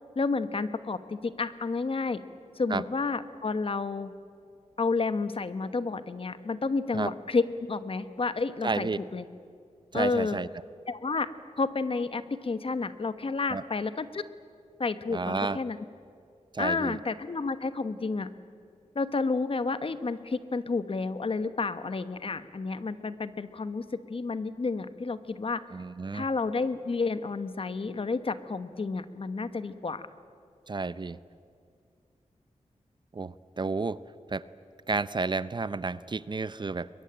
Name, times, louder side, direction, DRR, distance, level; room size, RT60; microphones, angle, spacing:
voice 1, 0.2-2.2 2.6-4.1 4.8-9.2 9.9-10.4 10.9-11.3 11.6-14.2 14.8-15.8 16.6-18.3 18.9-25.6 26.1-30.1, left 4 dB, 45° left, 12 dB, 1.1 m, -30 dB
voice 2, 8.6-9.0 9.9-10.5 13.5-13.6 15.1-15.6 16.5-17.0 25.7-26.3 30.7-31.2 33.1-34.0 34.3-34.4 34.9-36.9, right 4 dB, 40° right, 16 dB, 0.6 m, -31 dB
22.0 x 22.0 x 8.9 m, 2.3 s
wide cardioid pair, 90°, 13 cm